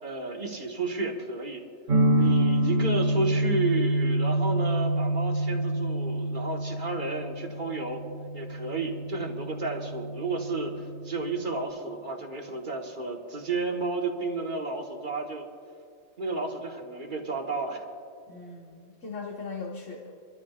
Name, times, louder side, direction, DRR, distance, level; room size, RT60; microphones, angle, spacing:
voice 1, 0.0-1.6 2.1-8.0 8.3-15.5 16.2-17.8, right 3 dB, 40° right, 1 dB, 1.5 m, -32 dB
sound 1, 1.9-11.7, right 1 dB, 80° right, 1.8 m, -27 dB
voice 2, 18.3-20.1, left 4 dB, 75° left, -2 dB, 1.8 m, -39 dB
28.0 x 12.5 x 2.4 m, 2.4 s
omnidirectional pair, 1.3 m